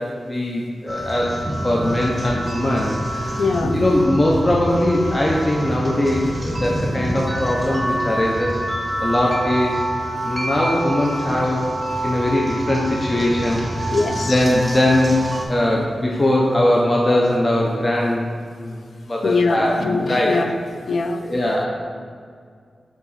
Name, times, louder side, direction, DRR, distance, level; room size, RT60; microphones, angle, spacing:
voice 1, 0.0-1.4 1.6-8.6 9.0-9.8 10.2-11.7 12.0-15.2 15.5-18.3 18.6-18.8 19.1-19.8 20.1-20.3 21.2-21.6, left 1 dB, 30° left, -3 dB, 0.8 m, -20 dB
sound 1, 0.9-15.4, right 1 dB, 10° right, 1.4 m, -26 dB
voice 2, 3.4-3.8 13.9-14.4 19.2-20.5 20.9-21.2, left 3 dB, 70° left, 7 dB, 0.5 m, -22 dB
7.0 x 4.9 x 4.1 m, 2.1 s
wide cardioid pair, 85°, 0 cm